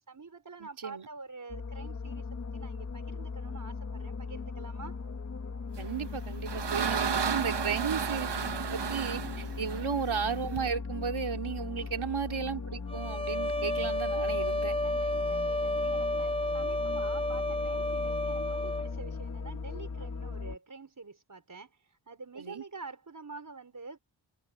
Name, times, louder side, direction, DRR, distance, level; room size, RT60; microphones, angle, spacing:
voice 1, 0.1-5.0 9.5-9.7 11.8-12.1 14.8-24.0, right 4 dB, 40° right, 5.2 m, -47 dB
sound 1, 1.5-20.6, left 4 dB, 35° left, 1.0 m, -38 dB
voice 2, 5.8-8.3 8.7-14.8 22.4-22.6, right 6 dB, 80° right, 3.8 m, -34 dB
sound 2, 6.0-10.7, right 7 dB, 60° right, 1.2 m, -33 dB
sound 3, 12.9-18.9, left 1 dB, 10° left, 0.7 m, -31 dB
wide cardioid pair, 125°, 47 cm